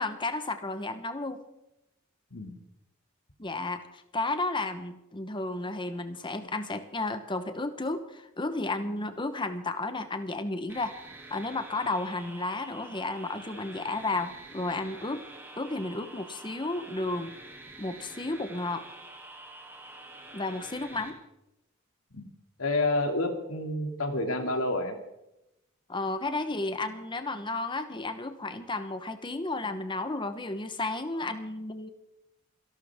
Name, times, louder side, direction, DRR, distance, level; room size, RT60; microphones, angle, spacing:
voice 1, 0.0-1.4 3.4-10.9 11.3-15.2 15.6-17.4 17.8-18.8 20.3-21.2 25.9-31.9, left 2 dB, 25° left, 9 dB, 1.1 m, -33 dB
sound 1, 10.7-21.1, right 2 dB, 10° right, 2.3 m, -47 dB
voice 2, 22.6-25.0 31.1-31.3, left 2 dB, 80° left, 4 dB, 2.6 m, -29 dB
27.5 x 12.5 x 3.6 m, 0.89 s
head